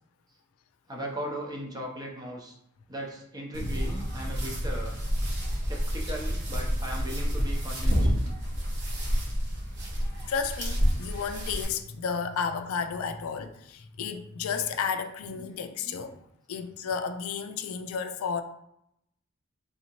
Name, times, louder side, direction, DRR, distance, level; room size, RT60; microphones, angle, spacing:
voice 1, 0.9-2.6 2.9-5.0 5.5-8.2 15.3-16.1, equal, 20° right, 0.6 m, -38 dB
sound 1, 3.5-11.6, equal, 55° right, 0.9 m, -29 dB
voice 2, 10.3-16.2 16.5-18.4, left 6 dB, 75° left, 0.3 m, -32 dB
3.4 x 2.7 x 2.9 m
head